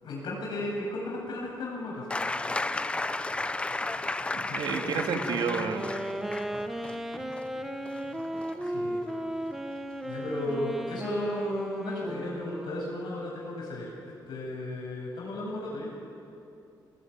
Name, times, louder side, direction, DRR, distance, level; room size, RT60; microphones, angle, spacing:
voice 1, 0.0-2.1 4.5-4.8 8.6-9.0 10.0-15.9, left 1 dB, 75° left, -4 dB, 8.0 m, -35 dB
sound 1, 2.1-9.6 10.8-10.9, left 2 dB, 15° left, 0.7 m, -34 dB
voice 2, 4.0-5.9, right 6 dB, 90° right, 4 dB, 2.6 m, -31 dB
Wind instrument woodwind instrument, 5.1-13.2, right 1 dB, 5° right, 1.3 m, -35 dB
25.0 x 20.0 x 9.6 m, 2.6 s
wide cardioid pair, 155°, 8 cm